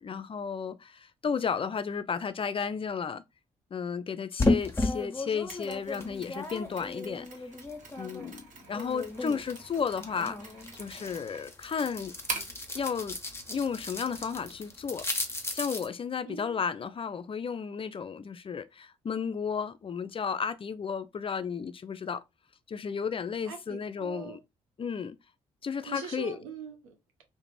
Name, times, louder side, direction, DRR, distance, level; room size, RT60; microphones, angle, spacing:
voice 1, 0.0-3.2 3.7-7.3 8.0-10.5 10.8-12.1 12.7-13.2 13.5-15.0 15.5-22.2 22.7-24.4 24.8-25.2 25.6-26.4, left 6 dB, 30° left, 0.4 m, -33 dB
sound 1, 4.4-8.3 8.6-15.9, left 2 dB, 15° left, 0.8 m, -34 dB
Mechanisms, 5.5-12.7, right 3 dB, 50° right, 1.0 m, -44 dB
voice 2, 16.2-16.6 23.5-24.4 25.9-27.2, right 4 dB, 85° right, 0.6 m, -43 dB
2.4 x 2.1 x 3.1 m
hypercardioid pair, 45°, 17 cm